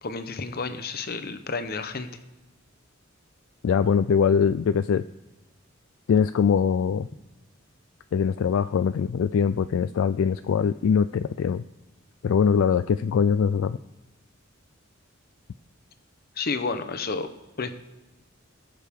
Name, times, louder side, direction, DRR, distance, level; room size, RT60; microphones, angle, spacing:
voice 1, 0.0-2.1 16.4-17.3 17.6-17.7, left 4 dB, 45° left, 10 dB, 0.8 m, -30 dB
voice 2, 3.6-5.0 6.1-7.1 8.1-11.6 12.2-13.8, left 6 dB, 65° left, 12 dB, 0.3 m, -22 dB
19.5 x 6.5 x 3.6 m, 1.1 s
head